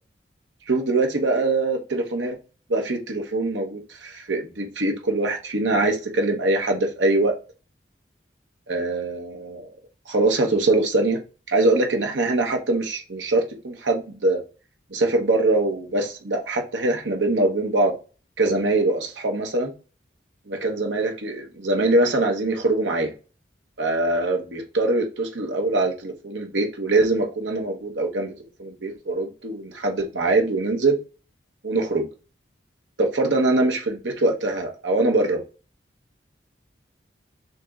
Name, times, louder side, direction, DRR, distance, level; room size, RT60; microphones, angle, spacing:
voice 1, 0.7-2.4 2.7-7.3 8.7-9.7 10.1-11.2 11.5-14.4 14.9-17.9 18.4-19.7 20.5-23.1 23.8-28.3 28.6-31.0 31.6-32.1 33.0-35.4, right 2 dB, 85° right, 1.1 m, -23 dB
5.7 x 3.0 x 2.5 m
head